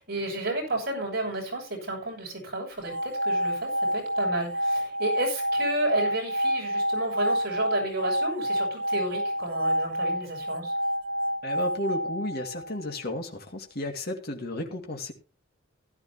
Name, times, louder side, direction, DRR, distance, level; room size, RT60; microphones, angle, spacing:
voice 1, 0.0-10.7, right 2 dB, 55° right, 1 dB, 7.2 m, -32 dB
sound 1, 2.8-13.0, equal, 85° right, 1.4 m, -28 dB
voice 2, 11.4-15.1, left 1 dB, 50° left, 3 dB, 2.4 m, -33 dB
16.0 x 12.5 x 2.9 m, 0.30 s
head